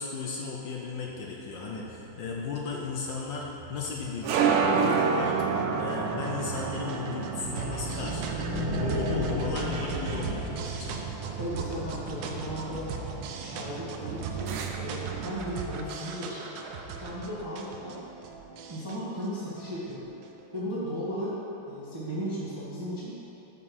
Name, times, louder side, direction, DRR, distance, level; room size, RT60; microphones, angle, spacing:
voice 1, 0.0-5.3 5.8-11.1, left 4 dB, 70° left, -2 dB, 1.3 m, -36 dB
sound 1, 1.3-15.3, right 5 dB, 90° right, 1.6 m, -31 dB
sound 2, 4.9-20.4, right 4 dB, 75° right, 1.3 m, -40 dB
sound 3, 7.4-11.8, left 1 dB, 55° right, 1.9 m, -34 dB
voice 2, 11.3-13.0 13.4-16.4 17.0-18.0 18.7-20.1 20.5-21.4 21.7-23.2, equal, 20° right, -8 dB, 0.7 m, -35 dB
5.6 x 5.3 x 6.1 m, 3.0 s
omnidirectional pair, 2.4 m